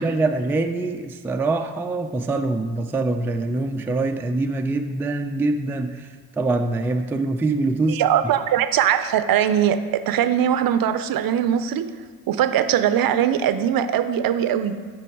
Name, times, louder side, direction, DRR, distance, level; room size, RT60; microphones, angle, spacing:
voice 1, 0.0-8.0, right 2 dB, 5° right, 5 dB, 0.3 m, -24 dB
voice 2, 7.9-9.8 10.1-11.9 12.3-14.8, right 10 dB, 50° right, 11 dB, 0.5 m, -21 dB
6.1 x 4.6 x 4.6 m, 1.5 s
hypercardioid pair, 55°, 44 cm